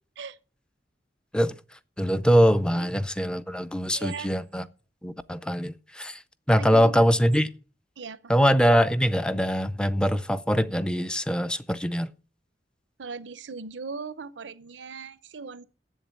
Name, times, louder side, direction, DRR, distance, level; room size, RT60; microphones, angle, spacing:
voice 1, 2.0-4.7 5.0-6.2 6.5-7.5 8.3-12.1, equal, 5° left, 0.4 m, -23 dB
voice 2, 3.9-4.3 6.6-7.1 8.0-8.3 13.0-15.6, right 5 dB, 85° right, 0.7 m, -38 dB
7.9 x 7.3 x 8.2 m
head